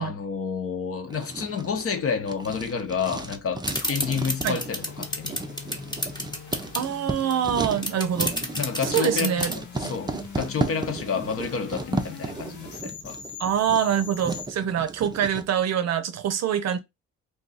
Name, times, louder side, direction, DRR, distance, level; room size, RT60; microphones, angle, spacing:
voice 1, 0.0-5.4 8.6-13.2, left 6 dB, 50° left, 0.9 m, -30 dB
Writing, 1.1-15.5, right 3 dB, 15° right, 0.5 m, -35 dB
sound 1, 3.7-14.5, left 6 dB, 75° left, 0.9 m, -43 dB
sound 2, 3.7-6.9 7.3-7.4 7.6-9.5, left 1 dB, 15° left, 0.9 m, -28 dB
voice 2, 6.7-8.4 8.8-9.5 9.8-10.2 13.4-16.8, right 9 dB, 60° right, 0.6 m, -25 dB
2.5 x 2.3 x 4.0 m
cardioid pair, 90°, 30 cm